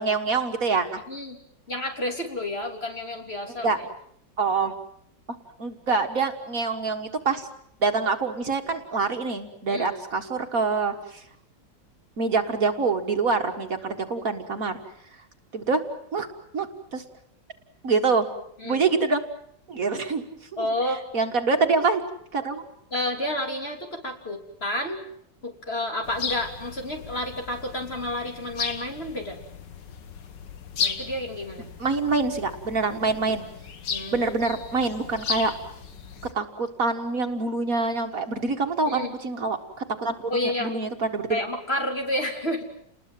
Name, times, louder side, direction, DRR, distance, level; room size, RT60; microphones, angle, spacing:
voice 1, 0.0-1.0 3.6-3.8 4.4-4.7 5.6-7.5 7.8-11.2 12.2-14.8 15.5-15.8 16.1-16.3 16.5-17.0 17.8-18.3 18.6-19.2 19.7-20.3 20.5-20.7 21.1-22.0 22.3-22.6 31.8-33.4 34.1-35.5 36.3-41.4, right 4 dB, 50° right, 5 dB, 2.0 m, -25 dB
voice 2, 1.7-3.8 9.7-9.9 18.6-18.8 20.6-21.0 22.9-25.0 25.4-29.4 30.8-31.7 33.9-34.4 38.9-39.1 40.3-40.7 41.3-42.6, left 1 dB, 35° left, 2 dB, 3.6 m, -30 dB
sound 1, 26.0-36.3, left 6 dB, 85° left, 2.1 m, -35 dB
29.5 x 20.5 x 7.6 m, 0.69 s
omnidirectional pair, 1.9 m